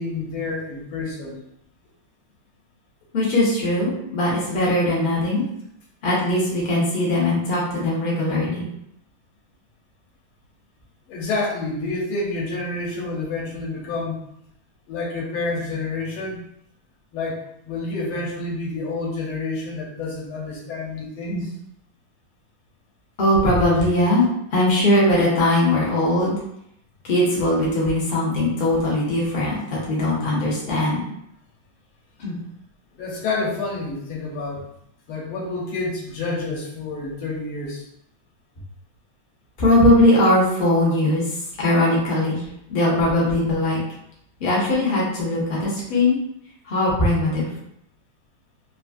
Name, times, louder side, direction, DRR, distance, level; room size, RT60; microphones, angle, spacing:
voice 1, 0.0-1.4 11.1-14.2 14.9-16.4 17.1-21.5 32.9-34.6 35.1-37.8, left 3 dB, 85° left, -2 dB, 1.6 m, -28 dB
voice 2, 3.1-5.4 6.0-8.7 21.3-21.4 23.2-24.3 24.5-26.4 27.0-31.0 32.2-32.4 39.6-41.2 41.6-42.4 42.7-43.8 44.4-46.2 46.7-47.5, left 1 dB, 70° left, -5 dB, 0.5 m, -20 dB
3.8 x 2.5 x 2.3 m, 0.75 s
omnidirectional pair, 2.3 m